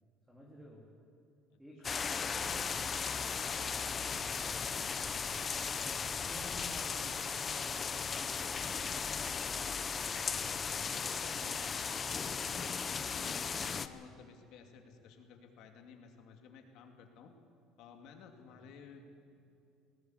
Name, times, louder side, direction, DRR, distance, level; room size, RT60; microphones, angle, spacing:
voice 1, 0.3-0.9 1.6-10.8 18.4-18.6, equal, 5° right, -2 dB, 3.3 m, -54 dB
sound 1, 1.8-13.9, left 6 dB, 30° left, 0.8 m, -36 dB
voice 2, 10.7-12.1 12.6-17.3 17.8-19.0, left 6 dB, 65° left, 3 dB, 2.6 m, -54 dB
19.5 x 18.5 x 8.1 m, 2.5 s
cardioid pair, 125°, 0 cm